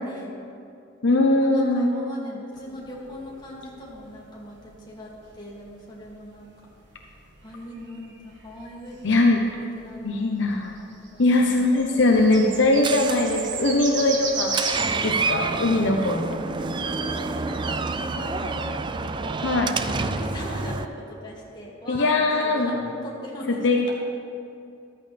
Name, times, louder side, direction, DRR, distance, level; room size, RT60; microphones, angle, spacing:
voice 1, 0.0-0.4 1.4-6.5 7.4-9.2 9.8-12.3 16.6-18.8 19.2-19.5 19.9-23.9, left 1 dB, 25° left, -5 dB, 2.4 m, -40 dB
voice 2, 1.0-2.0 9.0-9.4 10.0-10.8 11.2-14.6 15.0-16.3 19.4-19.7 21.9-22.9 23.5-23.9, left 2 dB, 65° left, 1 dB, 0.9 m, -21 dB
sound 1, 2.6-14.9, right 4 dB, 65° right, 1.4 m, -36 dB
sound 2, 11.7-11.9 12.8-12.9 13.9-14.0 14.9-15.1 16.0-16.2 17.1-17.2 18.1-18.3 19.2-19.4, left 4 dB, 80° left, 1.7 m, -42 dB
Door, 12.1-20.8, right 4 dB, 25° right, 0.4 m, -29 dB
14.0 x 12.5 x 3.4 m, 2.5 s
head